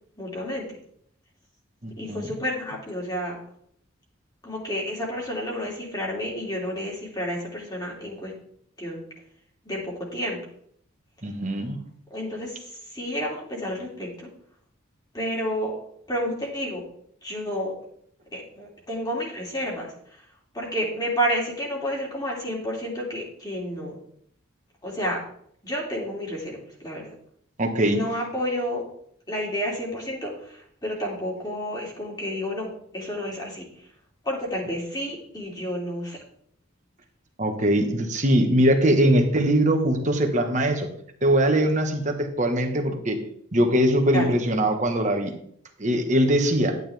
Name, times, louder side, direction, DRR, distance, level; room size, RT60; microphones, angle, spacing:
voice 1, 0.2-0.7 2.0-3.4 4.4-8.3 8.8-9.0 9.6-10.4 12.1-12.6 12.9-14.3 15.1-15.8 16.1-16.8 17.2-17.7 18.3-19.9 20.5-24.0 24.8-25.2 25.6-27.0 27.8-28.8 29.3-32.7 32.9-33.7 34.2-36.2 44.1-44.3, equal, 20° left, -3 dB, 3.0 m, -30 dB
voice 2, 1.8-2.3 11.2-11.8 27.6-28.0 37.4-40.9 41.2-43.2 43.5-45.3 45.8-46.8, right 1 dB, 35° right, 4 dB, 1.5 m, -21 dB
11.5 x 9.5 x 3.5 m, 0.66 s
head